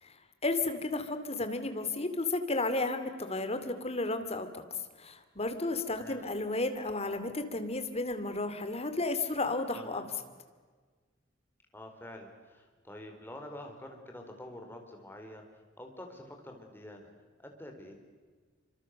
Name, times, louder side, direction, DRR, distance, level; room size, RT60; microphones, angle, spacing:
voice 1, 0.4-4.6 5.0-10.0, left 2 dB, 30° left, 9 dB, 2.5 m, -33 dB
voice 2, 9.7-10.0 11.7-15.4 15.8-17.1 17.4-17.9, left 1 dB, 10° left, 3 dB, 4.4 m, -47 dB
26.5 x 26.0 x 6.7 m, 1.5 s
head